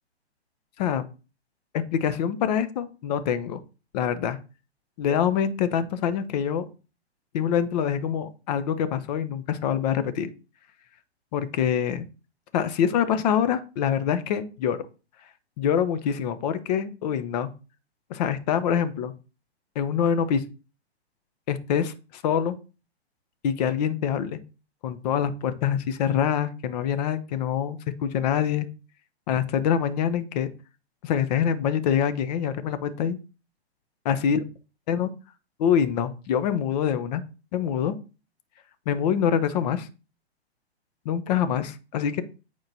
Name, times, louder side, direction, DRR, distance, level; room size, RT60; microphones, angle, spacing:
voice 1, 1.7-3.6 3.9-4.4 5.0-6.7 7.3-10.3 11.3-12.1 12.5-14.9 15.6-17.5 18.1-19.1 19.7-20.4 21.5-22.5 23.4-24.4 24.8-28.7 29.3-30.5 31.0-33.2 34.0-34.4 34.9-35.1 35.6-37.2 37.5-38.0 38.9-39.9 41.0-42.2, left 8 dB, 40° left, 12 dB, 0.8 m, -25 dB
8.9 x 4.7 x 2.9 m, 0.32 s
hypercardioid pair, 125°, 33 cm